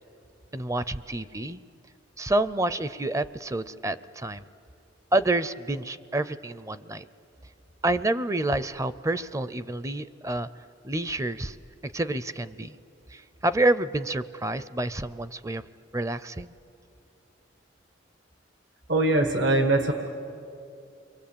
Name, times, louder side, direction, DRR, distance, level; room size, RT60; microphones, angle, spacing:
voice 1, 0.5-1.6 2.2-4.4 5.1-7.0 7.8-10.5 10.8-11.6 11.8-12.8 13.1-15.6 15.9-16.5, right 2 dB, 15° right, 15 dB, 0.6 m, -28 dB
voice 2, 18.9-19.9, right 2 dB, 70° right, 5 dB, 1.8 m, -22 dB
30.0 x 23.0 x 8.7 m, 2.6 s
head